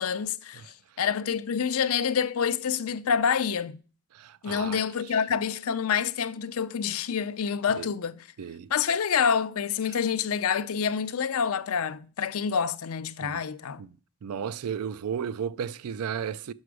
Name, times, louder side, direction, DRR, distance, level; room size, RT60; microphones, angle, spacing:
voice 1, 0.0-3.8 4.4-8.3 8.7-13.8, left 7 dB, 80° left, 0.5 m, -27 dB
voice 2, 4.1-4.8 7.8-7.9 8.4-8.7 13.2-13.4 13.8-13.9 14.2-16.5, right 7 dB, 90° right, 0.4 m, -34 dB
6.4 x 5.9 x 4.7 m
head